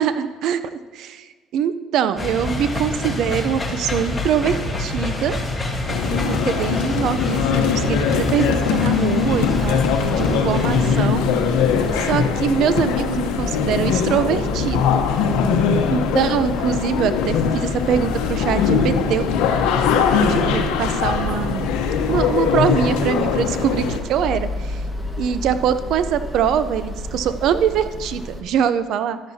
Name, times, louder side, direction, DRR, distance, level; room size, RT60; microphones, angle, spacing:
voice 1, 0.0-5.4 6.1-11.2 11.9-15.0 15.9-19.3 20.2-21.7 22.1-24.8 25.2-29.2, right 8 dB, 70° right, 12 dB, 0.6 m, -23 dB
sound 1, 2.2-11.1, left 2 dB, 15° left, 1.4 m, -27 dB
sound 2, 5.9-24.0, left 6 dB, 90° left, 0.9 m, -21 dB
sound 3, 9.0-28.4, left 1 dB, ahead, 1.4 m, -32 dB
13.0 x 10.5 x 2.8 m, 1.4 s
cardioid pair, 100°, 0 cm